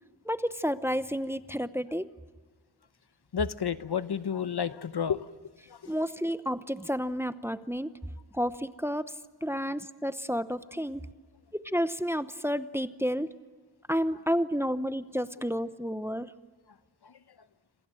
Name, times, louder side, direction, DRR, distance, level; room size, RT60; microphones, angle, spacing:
voice 1, 0.2-2.1 5.8-7.9 8.3-9.1 9.4-11.0 11.5-13.3 13.9-16.3, equal, 5° right, 12 dB, 0.8 m, -30 dB
voice 2, 3.3-5.3 5.7-5.9 17.0-17.1, left 7 dB, 65° left, 13 dB, 1.0 m, -31 dB
28.0 x 26.5 x 7.7 m, 1.4 s
wide cardioid pair, 95°, 43 cm